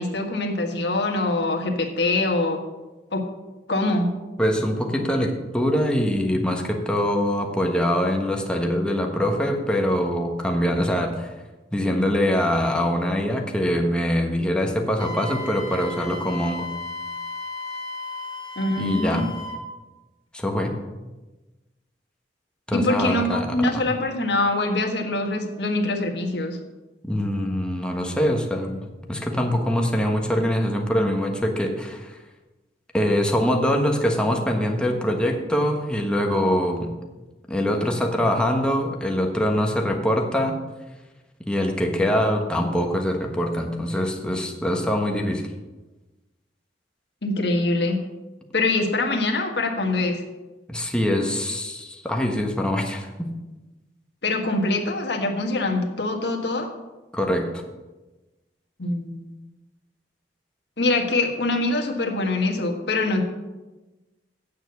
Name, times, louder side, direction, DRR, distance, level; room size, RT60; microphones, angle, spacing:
voice 1, 0.0-2.6 3.1-3.2 3.7-4.1 18.5-19.2 22.7-26.6 47.2-48.0 48.5-50.2 54.2-56.7 58.8-59.3 60.8-63.2, left 2 dB, 70° left, 3 dB, 1.6 m, -24 dB
voice 2, 4.4-11.3 11.7-16.7 18.8-19.3 20.3-20.8 22.7-23.8 27.1-32.2 32.9-36.9 37.5-40.6 41.5-45.4 50.7-53.3 57.1-57.6, equal, 5° left, 2 dB, 1.2 m, -23 dB
Wind instrument woodwind instrument, 15.0-19.6, left 2 dB, 25° left, 2.3 m, -34 dB
8.6 x 7.2 x 6.8 m, 1.1 s
head